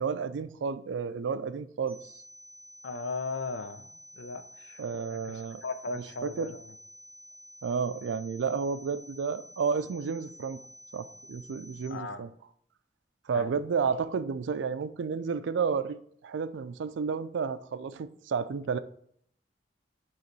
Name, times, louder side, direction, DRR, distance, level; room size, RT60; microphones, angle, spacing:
voice 1, 0.0-2.0 4.8-5.6 5.9-6.5 7.6-10.6 10.9-12.3 13.3-18.8, right 5 dB, 85° right, 0.4 m, -31 dB
sound 1, 1.9-11.9, equal, ahead, 2.4 m, -51 dB
voice 2, 2.8-3.8 4.2-4.4 4.7-4.8 5.1-5.2 5.6-6.6 11.9-12.2 13.3-13.5, left 3 dB, 75° left, 0.6 m, -36 dB
6.5 x 3.2 x 4.6 m
head